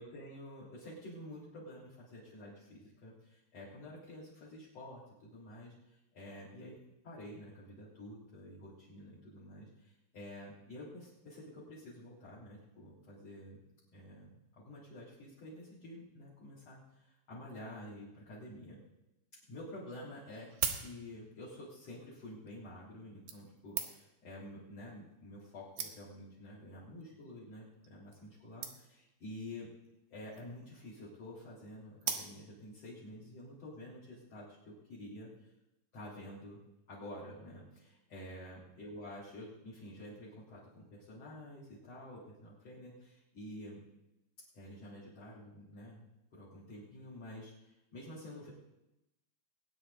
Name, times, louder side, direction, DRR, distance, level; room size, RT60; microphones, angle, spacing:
voice 1, 0.0-6.8 7.0-13.6 13.9-14.3 14.6-18.8 19.5-29.7 30.1-35.3 35.9-36.6 36.9-43.8 44.5-48.5, left 1 dB, 35° left, -7 dB, 4.1 m, -49 dB
sound 1, 19.5-19.6 20.3-21.4 22.3-22.5 23.3-24.2 25.1-25.2 25.4-25.5 25.8-26.3 27.0-27.2 27.5-27.6 27.8-27.9 28.1-28.3 28.6-29.1 30.1-30.6 32.0-32.7 33.2-33.3, right 8 dB, 80° right, 1.7 m, -40 dB
20.5 x 9.9 x 3.9 m, 0.91 s
omnidirectional pair, 5.3 m